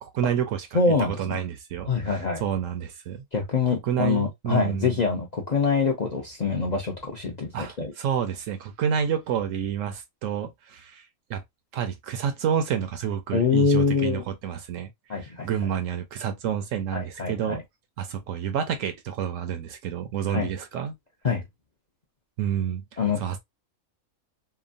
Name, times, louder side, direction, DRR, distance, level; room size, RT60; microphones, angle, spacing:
voice 1, 0.0-3.2 3.8-5.0 7.5-11.0 11.3-11.4 11.7-14.9 15.2-17.6 18.0-21.0 22.4-22.8 23.2-23.4, right 8 dB, 70° right, 0.9 m, -29 dB
voice 2, 0.7-1.4 1.9-2.4 3.3-7.9 13.3-14.2 15.1-15.5 16.9-17.6 20.3-20.5 21.2-21.4 23.0-23.2, left 5 dB, 45° left, 0.6 m, -25 dB
2.9 x 2.2 x 2.5 m
omnidirectional pair, 1.5 m